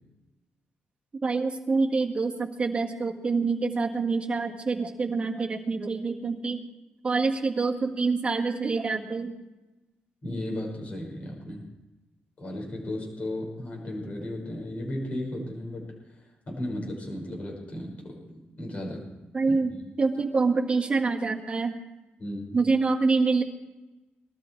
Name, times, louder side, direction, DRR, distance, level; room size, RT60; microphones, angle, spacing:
voice 1, 1.2-6.6 7.0-9.3 19.3-21.8 22.5-23.4, right 4 dB, 30° right, 0 dB, 1.7 m, -26 dB
voice 2, 10.2-11.6 12.4-19.1 19.5-19.9 22.2-22.6, left 1 dB, 35° left, -1 dB, 5.6 m, -35 dB
19.5 x 13.0 x 4.7 m, 1.1 s
wide cardioid pair, 150°, 4 cm